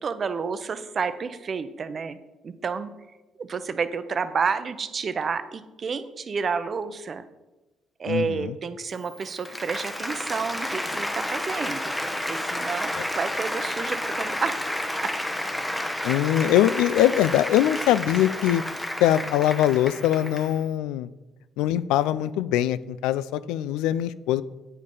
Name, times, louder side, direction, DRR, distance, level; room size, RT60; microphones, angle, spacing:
voice 1, 0.0-2.2 2.4-2.9 3.4-7.3 8.0-11.9 12.3-14.5, right 5 dB, 45° right, 11 dB, 0.7 m, -30 dB
voice 2, 8.1-8.5 16.0-18.6 19.0-21.1 21.6-24.4, left 12 dB, 85° left, 16 dB, 0.3 m, -22 dB
Applause, 9.0-20.6, left 1 dB, 10° left, 0.9 m, -31 dB
8.7 x 5.4 x 5.4 m, 1.1 s
supercardioid pair, 75°, 0 cm